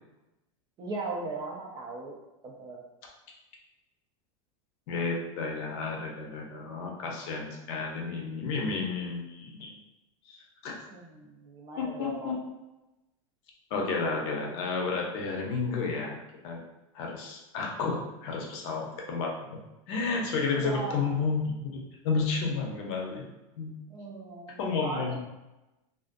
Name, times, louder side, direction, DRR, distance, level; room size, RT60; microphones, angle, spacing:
voice 1, 0.8-2.2 2.4-2.8 10.9-12.4 20.5-21.1 23.9-25.2, right 3 dB, 25° right, -1 dB, 0.4 m, -38 dB
voice 2, 4.9-9.7 10.3-10.8 11.8-12.3 13.7-16.6 16.9-19.6 19.9-23.2 23.6-23.8 24.6-25.2, left 4 dB, 50° left, 0 dB, 0.6 m, -31 dB
2.5 x 2.4 x 2.5 m, 0.98 s
supercardioid pair, 155°, 17 cm